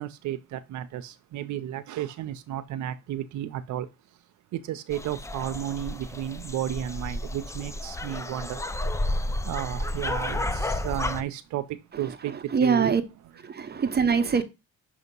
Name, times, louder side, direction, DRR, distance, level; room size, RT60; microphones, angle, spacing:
voice 1, 0.0-3.9 4.5-8.6 9.0-9.1 9.4-13.0, right 11 dB, 75° right, 0.5 m, -33 dB
sound 1, 4.9-11.2, left 1 dB, 10° left, 0.4 m, -31 dB
voice 2, 12.5-13.0 13.4-14.4, right 6 dB, 35° right, 0.7 m, -23 dB
6.4 x 2.8 x 5.2 m
cardioid pair, 90°, 30 cm